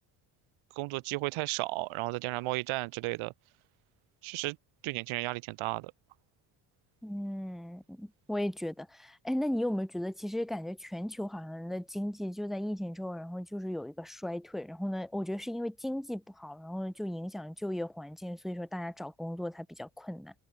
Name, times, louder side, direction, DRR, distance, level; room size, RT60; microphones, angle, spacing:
voice 1, 0.7-3.3 4.2-4.6 4.8-5.9, right 21 dB, 80° right, 1.5 m, -34 dB
voice 2, 7.0-20.3, left 1 dB, ahead, 0.3 m, -36 dB
supercardioid pair, 85°, 48 cm